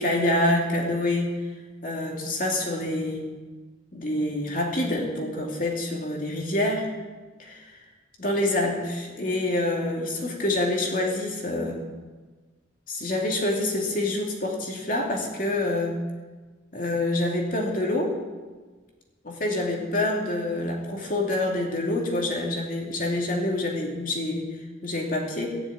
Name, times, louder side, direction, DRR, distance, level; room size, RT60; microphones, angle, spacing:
voice 1, 0.0-1.3 1.8-3.3 3.9-6.9 7.4-7.8 8.2-11.8 12.9-16.0 16.7-18.2 19.2-24.6 24.8-25.6, left 1 dB, 45° left, 0 dB, 2.7 m, -26 dB
17.0 x 7.1 x 8.7 m, 1.3 s
head